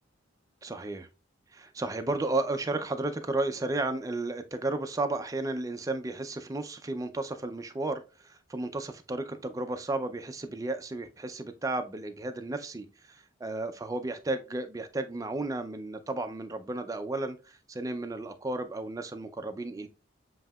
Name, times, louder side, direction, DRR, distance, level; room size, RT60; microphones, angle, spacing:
voice 1, 0.6-1.1 1.5-19.9, right 2 dB, 20° right, 0.4 m, -33 dB
7.5 x 2.8 x 2.2 m
head